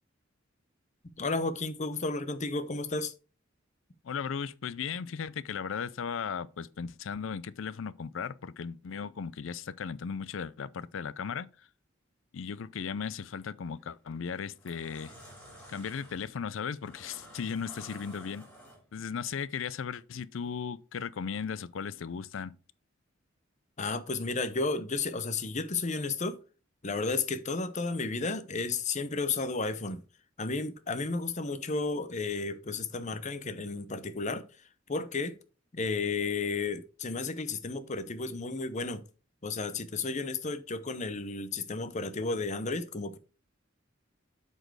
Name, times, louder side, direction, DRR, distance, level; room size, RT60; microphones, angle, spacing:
voice 1, 1.2-3.1 23.8-26.4 26.8-30.0 30.4-34.4 34.9-35.4 35.7-39.0 39.4-43.2, left 3 dB, 35° left, 0.7 m, -33 dB
voice 2, 4.0-11.7 12.3-15.1 15.7-18.5 18.9-22.5, left 6 dB, 75° left, 0.5 m, -36 dB
sound 1, 13.7-13.9 14.4-19.1, equal, 5° left, 3.0 m, -51 dB
7.9 x 4.5 x 4.7 m
head